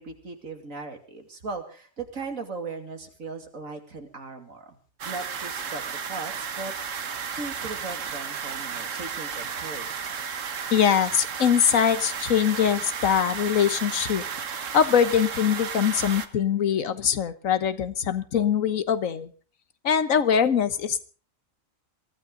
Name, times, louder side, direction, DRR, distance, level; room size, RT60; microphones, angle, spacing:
voice 1, 0.0-4.8 5.0-6.7 7.3-9.9, right 3 dB, 85° right, 5 dB, 3.0 m, -38 dB
sound 1, 5.0-16.3, right 6 dB, 70° right, 1.6 m, -33 dB
voice 2, 10.7-14.2 14.7-19.3 19.8-21.0, left 8 dB, 80° left, 12 dB, 1.5 m, -22 dB
22.5 x 15.5 x 3.9 m, 0.38 s
omnidirectional pair, 1.4 m